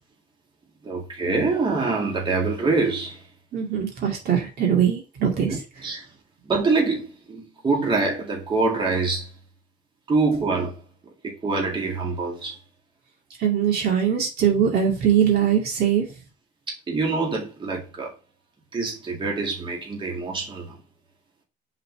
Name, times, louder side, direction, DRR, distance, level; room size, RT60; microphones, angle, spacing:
voice 1, 0.8-3.2 5.5-6.0 6.5-9.3 10.1-10.7 11.2-12.6 16.7-18.1 18.7-20.8, right 3 dB, 30° right, 2.2 m, -25 dB
voice 2, 3.5-5.6 13.4-16.1, right 8 dB, 65° right, 2.3 m, -21 dB
5.3 x 4.1 x 4.5 m
cardioid pair, 110°, 17 cm